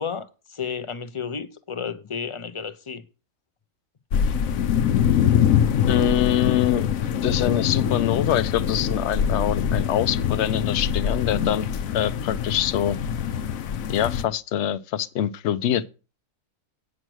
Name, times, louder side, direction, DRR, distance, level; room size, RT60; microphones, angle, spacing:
voice 1, 0.0-3.0 4.2-4.4, left 6 dB, 35° left, 0.5 m, -32 dB
sound 1, 4.1-14.2, left 8 dB, 85° left, 1.1 m, -24 dB
voice 2, 5.9-6.9 7.2-13.0 13.9-15.9, left 11 dB, 65° left, 0.9 m, -24 dB
9.0 x 6.3 x 6.2 m
omnidirectional pair, 1.4 m